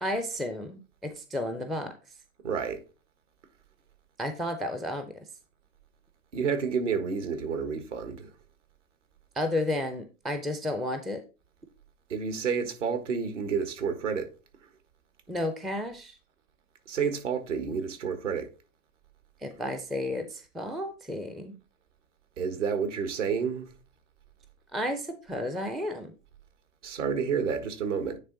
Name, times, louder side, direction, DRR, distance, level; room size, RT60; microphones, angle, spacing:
voice 1, 0.0-1.9 4.2-5.1 9.4-11.2 15.3-16.2 19.4-21.6 24.7-26.1, left 1 dB, ahead, 0.3 m, -32 dB
voice 2, 2.4-2.8 6.3-8.3 12.1-14.3 16.9-18.5 22.4-23.7 26.8-28.2, right 6 dB, 65° right, 1.6 m, -30 dB
9.6 x 3.4 x 3.9 m
figure-of-eight pair, 90°, 40 cm